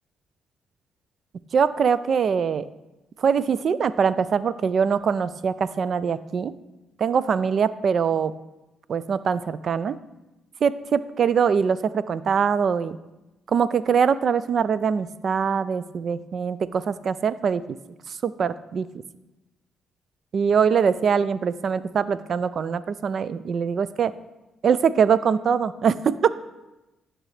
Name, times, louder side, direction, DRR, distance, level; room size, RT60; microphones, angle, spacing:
voice 1, 1.5-2.7 3.2-6.5 7.0-8.3 8.9-10.0 10.6-13.0 13.5-17.6 18.1-18.9 20.3-24.1 24.6-26.3, right 6 dB, 55° right, 16 dB, 0.3 m, -23 dB
11.5 x 6.0 x 3.3 m, 1.0 s
cardioid pair, 90°, 0 cm